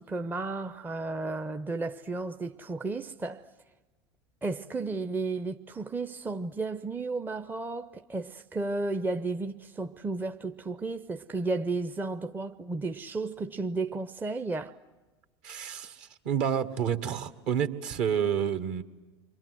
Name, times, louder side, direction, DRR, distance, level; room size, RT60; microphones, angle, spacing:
voice 1, 0.0-3.4 4.4-14.7, right 3 dB, 15° right, 0.8 m, -33 dB
voice 2, 15.4-18.8, right 8 dB, 50° right, 1.8 m, -29 dB
29.5 x 24.5 x 7.9 m
figure-of-eight pair, 80°, 15 cm